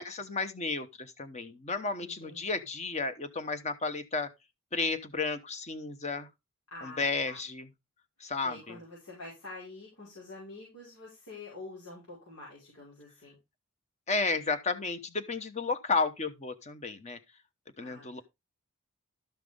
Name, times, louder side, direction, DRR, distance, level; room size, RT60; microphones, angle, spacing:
voice 1, 0.0-4.3 4.7-6.3 6.8-7.7 8.2-8.8 14.1-17.2 17.8-18.2, left 4 dB, 30° left, 1.0 m, -32 dB
voice 2, 2.0-2.6 6.7-7.4 8.4-13.3 17.8-18.2, left 2 dB, 80° left, 5.5 m, -47 dB
13.0 x 5.9 x 3.6 m
head